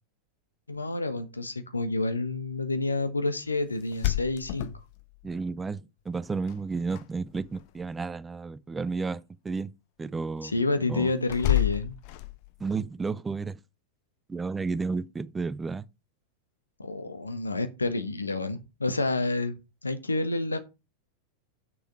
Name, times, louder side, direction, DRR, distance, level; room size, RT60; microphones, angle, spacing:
voice 1, 0.7-4.7 10.4-11.9 16.8-20.6, left 2 dB, 80° left, 1.2 m, -29 dB
sound 1, 3.8-5.3 6.5-7.0 7.3-7.8 11.3-12.7, left 18 dB, 45° left, 0.8 m, -29 dB
voice 2, 5.2-9.7 10.0-11.1 12.6-13.6 14.3-15.9, right 4 dB, 15° right, 0.6 m, -32 dB
6.6 x 6.2 x 6.1 m
figure-of-eight pair, 90°, 0 cm